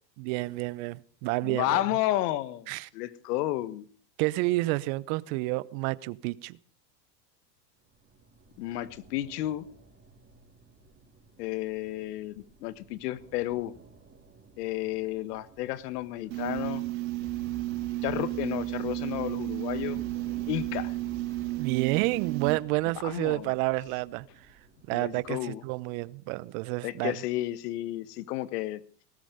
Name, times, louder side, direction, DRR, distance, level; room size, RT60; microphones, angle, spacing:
voice 1, 0.2-1.8 2.7-2.9 4.2-6.6 21.6-24.2 24.9-27.2, right 21 dB, 55° right, 1.0 m, -29 dB
voice 2, 1.4-3.9 8.6-9.7 11.4-13.7 14.6-16.8 18.0-20.0 20.5-20.9 23.0-23.5 24.9-25.6 26.8-28.8, left 15 dB, 70° left, 1.6 m, -32 dB
sound 1, 7.8-25.4, right 3 dB, 20° right, 4.6 m, -56 dB
sound 2, 16.3-22.6, right 18 dB, 80° right, 2.3 m, -32 dB
sound 3, 17.2-21.6, right 1 dB, 5° left, 3.5 m, -49 dB
18.5 x 13.5 x 5.2 m
supercardioid pair, 120°, 50 cm